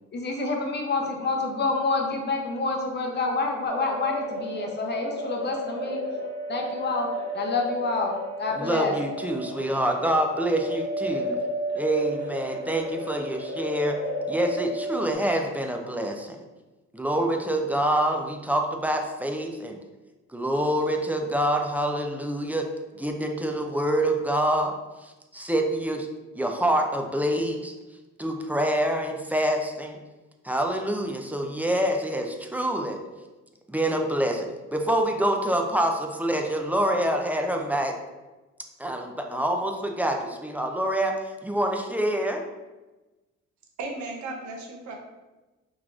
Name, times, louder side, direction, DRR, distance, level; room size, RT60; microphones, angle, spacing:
voice 1, 0.1-6.0 6.5-7.1 7.3-8.1 8.4-8.9, left 3 dB, 35° left, 1 dB, 0.7 m, -28 dB
sound 1, 3.7-15.1, equal, 35° right, 1.2 m, -33 dB
voice 2, 8.5-11.4 11.8-14.0 14.3-16.4 16.9-19.8 20.3-22.7 23.0-24.8 25.0-26.1 26.3-27.7 28.2-30.0 30.4-33.0 33.7-38.0 38.8-41.2 41.4-42.4, right 1 dB, 5° right, 3 dB, 0.3 m, -26 dB
voice 3, 43.8-45.0, right 3 dB, 70° right, 1 dB, 0.8 m, -35 dB
3.8 x 2.9 x 2.4 m, 1.1 s
cardioid pair, 90°, 30 cm